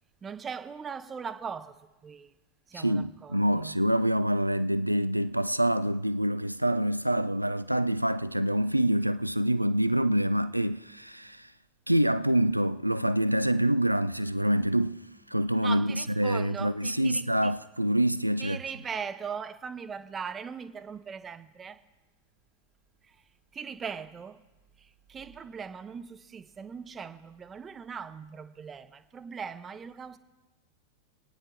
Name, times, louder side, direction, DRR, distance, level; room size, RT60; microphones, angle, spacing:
voice 1, 0.2-1.8 2.0-2.3 2.7-3.8 15.6-17.5 18.4-21.8 23.1-23.2 23.5-24.4 24.8-30.2, right 6 dB, 20° right, 0.7 m, -40 dB
voice 2, 2.7-11.5 11.9-15.0 15.3-18.6, right 1 dB, 90° right, 0.3 m, -26 dB
24.0 x 9.5 x 3.4 m
figure-of-eight pair, 90°, 0 cm